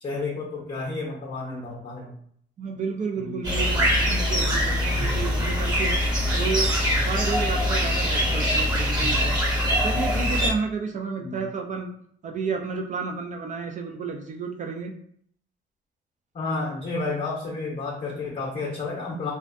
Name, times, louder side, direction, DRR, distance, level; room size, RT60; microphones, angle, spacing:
voice 1, 0.0-2.1 3.2-3.4 11.2-11.4 16.3-19.3, left 3 dB, 40° left, -3 dB, 0.7 m, -31 dB
voice 2, 2.6-6.0 6.3-6.8 7.0-9.4 9.8-11.9 12.2-14.9, right 5 dB, 40° right, 3 dB, 0.4 m, -31 dB
sound 1, 3.4-10.5, equal, 20° right, 0.8 m, -23 dB
2.4 x 2.1 x 2.5 m, 0.64 s
cardioid pair, 90°, 20 cm